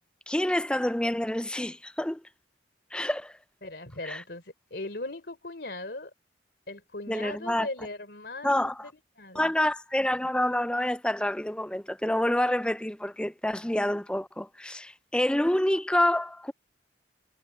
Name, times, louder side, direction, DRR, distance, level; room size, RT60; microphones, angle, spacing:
voice 1, 0.3-2.2 2.9-3.4 4.0-4.2 7.1-7.7 8.4-8.9 9.3-16.5, left 1 dB, 5° left, 0.5 m, -27 dB
voice 2, 3.6-6.1 6.7-8.9 9.2-9.5, left 2 dB, 60° left, 3.9 m, -39 dB
head